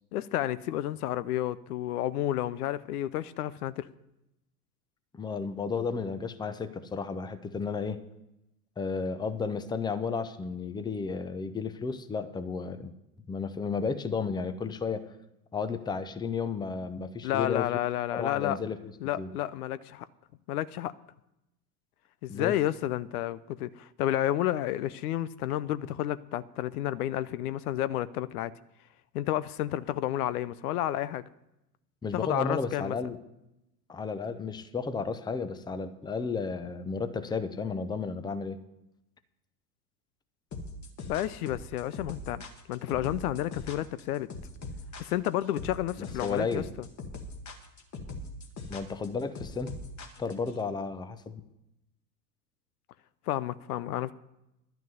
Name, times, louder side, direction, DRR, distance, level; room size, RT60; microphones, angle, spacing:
voice 1, 0.1-3.9 17.2-18.6 19.0-20.0 20.5-20.9 22.2-28.5 29.1-31.2 32.1-33.0 41.1-42.4 42.7-44.3 45.0-46.6 53.3-54.1, left 13 dB, 65° left, 0.6 m, -31 dB
voice 2, 5.1-8.0 8.8-12.9 13.3-15.1 15.5-17.7 18.1-18.9 19.2-19.3 22.3-22.6 32.0-33.2 33.9-38.6 46.0-46.6 48.7-49.7 50.2-51.4, left 5 dB, 10° left, 0.7 m, -33 dB
sound 1, 40.5-50.5, left 2 dB, 35° left, 1.9 m, -41 dB
11.5 x 6.0 x 9.0 m
hypercardioid pair, 90°, 49 cm